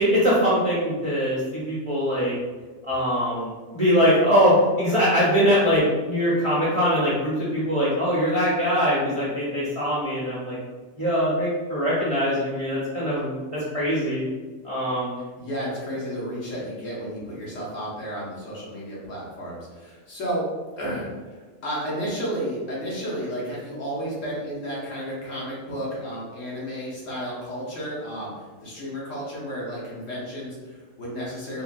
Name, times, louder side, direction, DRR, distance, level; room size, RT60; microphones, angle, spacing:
voice 1, 0.0-2.4 2.9-10.6 11.0-14.2 14.6-15.2, equal, 40° right, -8 dB, 0.5 m, -22 dB
voice 2, 15.2-20.4 20.8-31.6, equal, 70° left, -6 dB, 1.3 m, -32 dB
3.7 x 2.2 x 2.5 m, 1.3 s
omnidirectional pair, 1.4 m